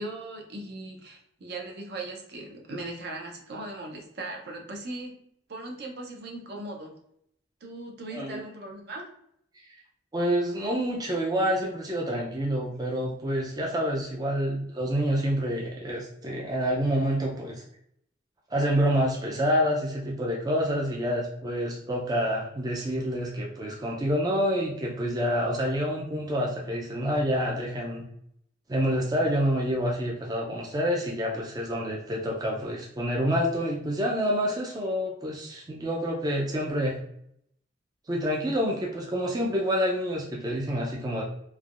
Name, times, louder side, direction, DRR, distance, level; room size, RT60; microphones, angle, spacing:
voice 1, 0.0-5.2 5.5-7.0 7.6-9.1, right 2 dB, 60° right, 1 dB, 0.6 m, -38 dB
voice 2, 10.1-17.6 18.5-28.0 28.7-37.0 38.1-41.2, equal, 20° right, -2 dB, 0.4 m, -27 dB
3.3 x 2.2 x 2.4 m, 0.72 s
head